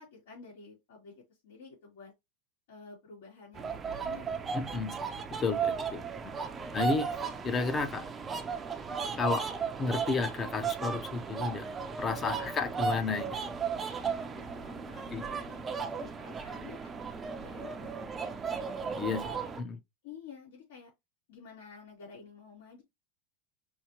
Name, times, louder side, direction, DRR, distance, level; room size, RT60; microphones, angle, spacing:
voice 1, 0.0-2.1 2.7-4.3 8.8-9.0 12.2-12.8 14.3-17.0 17.4-18.0 20.0-20.9 21.3-22.8, left 5 dB, 80° left, 2.8 m, -51 dB
sound 1, 3.5-19.6, right 6 dB, 15° right, 0.6 m, -36 dB
voice 2, 4.5-5.0 5.3-6.3 6.7-7.1 7.4-8.0 9.2-9.5 9.8-11.7 12.0-13.4 15.1-15.3 18.9-19.8, left 4 dB, 20° left, 0.7 m, -32 dB
5.6 x 2.8 x 2.9 m
supercardioid pair, 145°, 0 cm